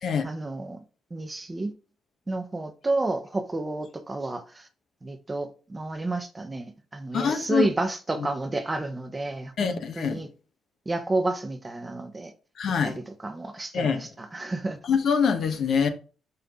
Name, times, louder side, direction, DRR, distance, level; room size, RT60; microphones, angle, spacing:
voice 1, 0.2-0.8 1.1-1.7 2.3-4.7 5.0-10.3 10.9-12.3 12.8-14.8, right 2 dB, 20° right, 0.9 m, -31 dB
voice 2, 7.1-7.7 8.2-8.3 9.6-10.2 12.6-13.0 13.7-14.1 14.8-15.9, left 6 dB, 60° left, 1.2 m, -24 dB
5.5 x 5.5 x 3.7 m
cardioid pair, 105°, 0 cm